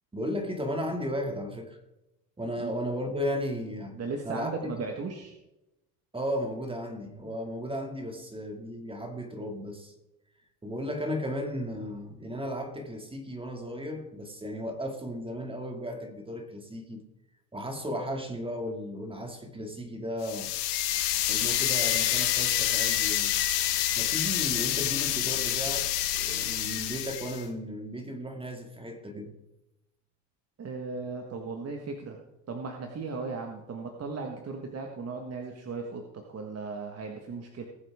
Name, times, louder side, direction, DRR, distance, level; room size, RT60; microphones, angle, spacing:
voice 1, 0.1-1.8 2.4-3.9 4.2-4.5 6.1-9.9 10.6-17.0 17.5-20.5 21.3-23.4 24.0-29.3, equal, 10° right, 4 dB, 2.3 m, -35 dB
voice 2, 3.9-5.3 30.6-32.2 32.5-37.7, right 4 dB, 30° right, 2 dB, 1.6 m, -37 dB
sound 1, 20.2-27.4, left 12 dB, 85° left, 1.9 m, -27 dB
19.5 x 7.7 x 3.6 m, 0.94 s
supercardioid pair, 105°, 47 cm